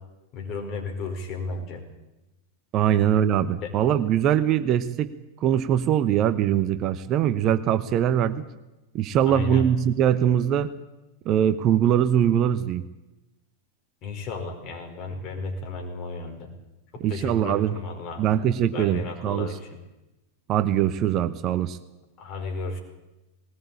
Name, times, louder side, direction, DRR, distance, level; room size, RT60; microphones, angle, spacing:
voice 1, 0.3-1.8 2.9-3.0 3.6-3.7 9.3-9.7 14.0-16.5 16.9-18.2 18.7-19.6 22.2-22.8, left 4 dB, 35° left, 3 dB, 5.0 m, -33 dB
voice 2, 2.7-5.1 5.4-8.4 8.9-10.7 11.2-12.8 17.0-17.8 18.2-19.6 20.5-21.8, right 10 dB, 35° right, 12 dB, 0.9 m, -22 dB
19.5 x 19.0 x 8.6 m, 1.0 s
figure-of-eight pair, 90°, 0 cm